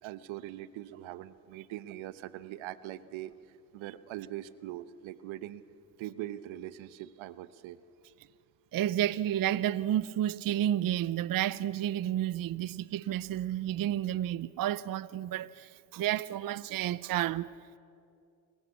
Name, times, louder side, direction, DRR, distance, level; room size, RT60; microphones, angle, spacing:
voice 1, 0.0-5.6 6.0-7.8, right 13 dB, 80° right, 0.9 m, -42 dB
voice 2, 8.7-17.5, right 12 dB, 50° right, 0.6 m, -31 dB
27.0 x 14.5 x 8.3 m
supercardioid pair, 70°, 47 cm